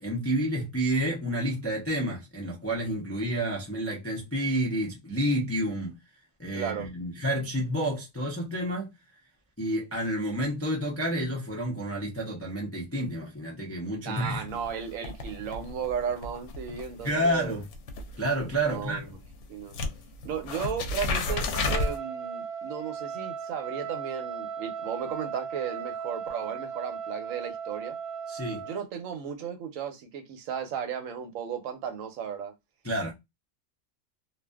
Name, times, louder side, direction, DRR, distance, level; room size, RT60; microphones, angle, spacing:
voice 1, 0.0-6.0 6.4-8.9 9.6-14.5 17.0-17.6 18.2-19.0 28.3-28.6 32.8-33.1, right 1 dB, 25° left, 0.3 m, -29 dB
voice 2, 6.5-6.9 14.0-17.6 18.6-19.1 19.5-19.8 20.2-28.0 28.6-32.5, right 7 dB, 85° right, 1.1 m, -35 dB
sound 1, 14.5-19.4 19.7-22.0, left 3 dB, 70° left, 0.9 m, -33 dB
Trumpet, 21.5-28.8, right 6 dB, 65° right, 0.9 m, -37 dB
2.5 x 2.4 x 2.2 m
omnidirectional pair, 1.4 m